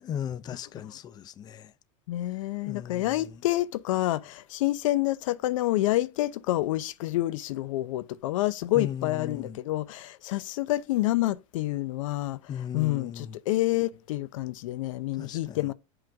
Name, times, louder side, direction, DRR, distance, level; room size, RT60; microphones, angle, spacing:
voice 1, 0.0-1.7 2.7-3.4 8.7-9.6 12.5-13.4 15.2-15.7, left 9 dB, 25° left, 0.5 m, -37 dB
voice 2, 2.1-12.4 12.7-15.7, left 16 dB, 85° left, 0.6 m, -28 dB
7.9 x 3.7 x 4.6 m
supercardioid pair, 140°, 16 cm